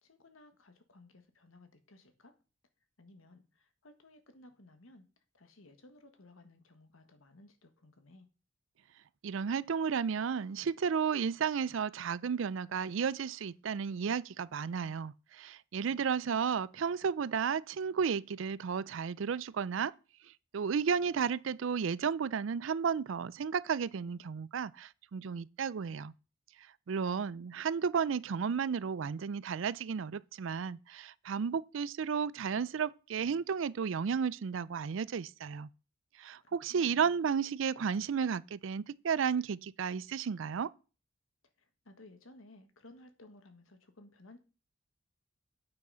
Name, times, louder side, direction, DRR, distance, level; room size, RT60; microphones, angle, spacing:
voice 1, 0.0-2.3 3.0-5.1 5.3-8.3 15.7-16.1 36.4-37.1 41.6-44.4, left 2 dB, 85° left, 1.6 m, -58 dB
voice 2, 9.2-19.9 20.5-26.1 26.9-35.7 36.2-40.7, right 6 dB, 70° right, 0.4 m, -33 dB
8.8 x 6.2 x 5.6 m
head